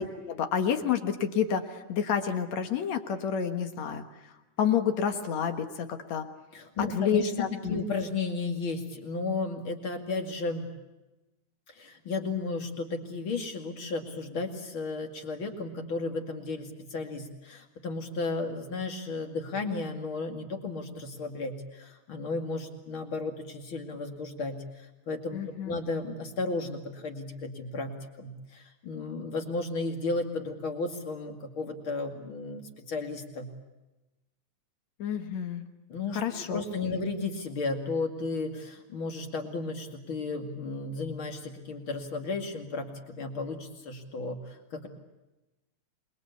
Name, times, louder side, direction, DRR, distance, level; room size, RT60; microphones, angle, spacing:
voice 1, 0.0-4.1 4.6-6.3 6.8-7.8 25.3-25.8 35.0-35.6 36.1-37.0, left 7 dB, 60° left, 7 dB, 2.5 m, -29 dB
voice 2, 6.5-10.7 11.7-33.5 35.9-44.9, left 3 dB, 40° left, 4 dB, 2.9 m, -34 dB
27.0 x 21.5 x 8.3 m, 1.0 s
omnidirectional pair, 3.8 m